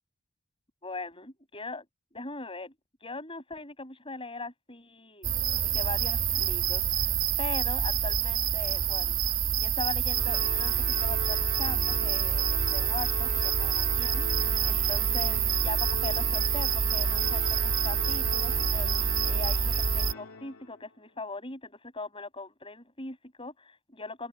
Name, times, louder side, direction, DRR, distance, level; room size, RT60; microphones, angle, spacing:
voice 1, 0.8-1.8 2.1-2.7 3.0-5.3 5.7-9.2 9.6-24.3, left 3 dB, 25° left, 7.1 m, -40 dB
sound 1, 5.2-20.1, right 7 dB, 65° right, 1.8 m, -27 dB
Organ, 10.1-20.8, left 3 dB, 90° left, 2.5 m, -40 dB
head